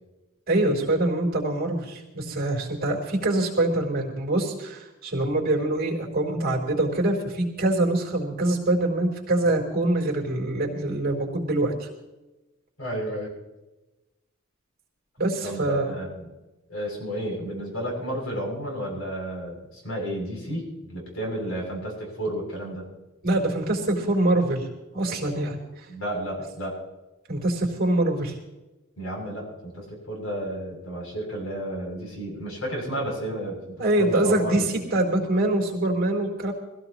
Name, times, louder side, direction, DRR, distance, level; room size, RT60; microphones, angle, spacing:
voice 1, 0.5-11.9 15.2-15.9 23.2-24.7 24.9-25.6 27.3-28.4 33.8-36.5, right 1 dB, 45° right, 0 dB, 3.8 m, -24 dB
voice 2, 12.8-13.3 15.4-16.3 16.7-22.9 25.9-26.8 29.0-34.6, right 1 dB, 80° left, -1 dB, 7.4 m, -32 dB
24.0 x 16.5 x 3.0 m, 1.0 s
head